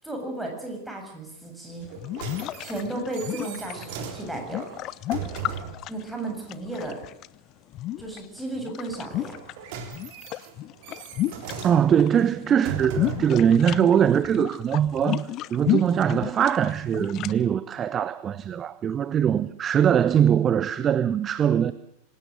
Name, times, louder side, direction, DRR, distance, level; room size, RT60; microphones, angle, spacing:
voice 1, 0.0-1.9 2.6-4.7 5.9-7.0 8.0-9.4, right 2 dB, 5° right, 7.9 m, -34 dB
sound 1, 1.8-7.3 7.7-9.5 9.8-12.1 12.3-17.3, left 14 dB, 35° left, 0.8 m, -32 dB
sound 2, 1.8-5.9 9.2-13.4 14.1-14.2, right 7 dB, 45° right, 3.7 m, -38 dB
voice 2, 11.6-21.7, right 8 dB, 25° right, 0.8 m, -22 dB
26.0 x 17.5 x 6.6 m
figure-of-eight pair, 90°, 0 cm